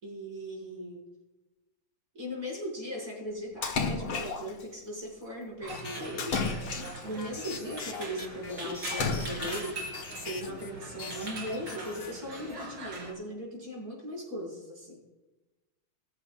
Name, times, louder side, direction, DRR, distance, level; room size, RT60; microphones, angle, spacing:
voice 1, 0.0-1.0 2.1-6.5 7.0-9.8 10.2-15.0, equal, 40° right, -3 dB, 5.7 m, -38 dB
Splash splatter, 3.6-4.6 6.2-7.3 8.9-9.7, left 4 dB, 90° left, 2.3 m, -32 dB
sound 1, 5.6-13.1, right 2 dB, 80° right, 3.8 m, -41 dB
sound 2, 5.7-10.7 11.0-12.7, left 5 dB, 45° left, 1.5 m, -42 dB
21.5 x 14.0 x 2.4 m, 1.1 s
omnidirectional pair, 2.2 m